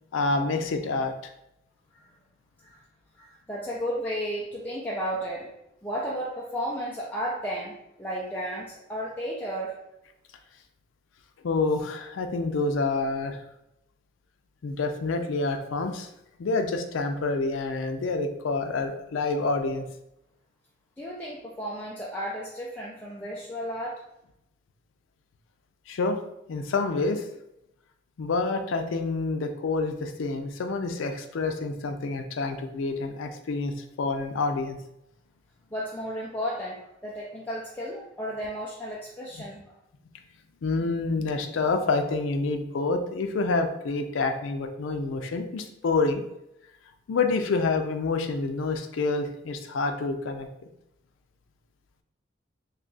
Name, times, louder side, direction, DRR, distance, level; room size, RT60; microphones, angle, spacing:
voice 1, 0.1-1.1 11.4-13.4 14.6-16.1 16.4-19.9 25.9-26.2 26.5-27.2 28.2-33.7 34.0-34.8 40.6-46.2 47.1-50.5, left 3 dB, 90° left, 6 dB, 0.4 m, -27 dB
voice 2, 3.1-5.5 5.8-9.7 21.0-24.0 35.7-39.8, equal, 10° left, -5 dB, 0.4 m, -33 dB
2.8 x 2.3 x 3.9 m, 0.83 s
head